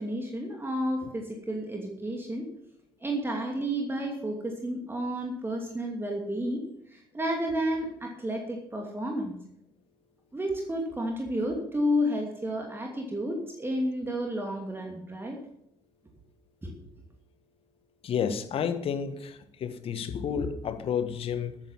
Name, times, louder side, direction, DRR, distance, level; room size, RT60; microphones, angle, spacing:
voice 1, 0.0-2.5 3.0-6.6 6.9-9.4 10.3-15.4 16.6-16.7, equal, 15° right, 1 dB, 2.6 m, -31 dB
voice 2, 18.0-21.6, left 7 dB, 45° left, 10 dB, 1.4 m, -31 dB
13.5 x 9.1 x 5.6 m, 0.74 s
figure-of-eight pair, 50°, 13 cm